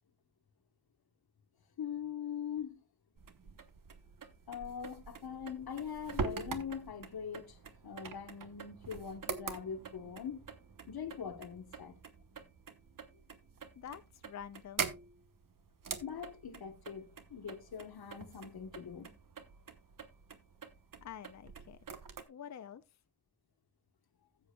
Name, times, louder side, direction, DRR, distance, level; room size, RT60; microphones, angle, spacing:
voice 1, 1.8-2.8 4.5-7.6 7.8-10.4 10.9-12.0 16.0-19.1, left 7 dB, 80° left, 1.2 m, -42 dB
sound 1, 3.2-22.2, right 5 dB, 60° right, 1.0 m, -45 dB
voice 2, 13.7-14.9 21.0-21.8 22.3-23.0, left 9 dB, 50° left, 0.5 m, -48 dB
15.5 x 7.6 x 2.2 m
cardioid pair, 70°, 37 cm